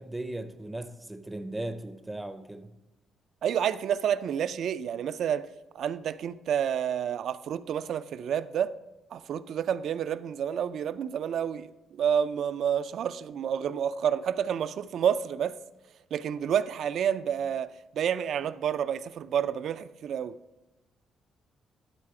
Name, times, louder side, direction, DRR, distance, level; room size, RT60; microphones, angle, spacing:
voice 1, 0.0-2.7, right 1 dB, 10° right, 0.5 m, -37 dB
voice 2, 3.4-5.5 5.7-8.7 9.1-15.6 16.1-17.7 17.9-20.3, right 8 dB, 70° right, 0.3 m, -29 dB
12.0 x 4.1 x 4.8 m
cardioid pair, 90°, 0 cm